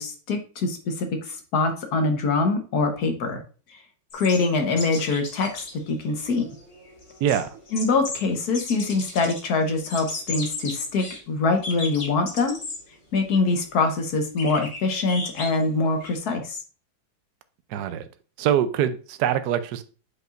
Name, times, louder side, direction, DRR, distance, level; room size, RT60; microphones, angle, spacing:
voice 1, 0.0-3.4 4.1-6.5 7.7-12.6 13.1-16.6, left 3 dB, 55° left, 1.4 m, -24 dB
sound 1, 4.1-5.7 6.0-6.1 6.3-8.2 8.5-9.4 9.8-11.2 11.6-12.8 13.2-13.3 14.4-16.2, left 3 dB, 40° left, 1.3 m, -36 dB
voice 2, 17.7-18.0 18.4-19.8, right 10 dB, 70° right, 1.0 m, -23 dB
7.9 x 5.3 x 2.5 m
omnidirectional pair, 2.2 m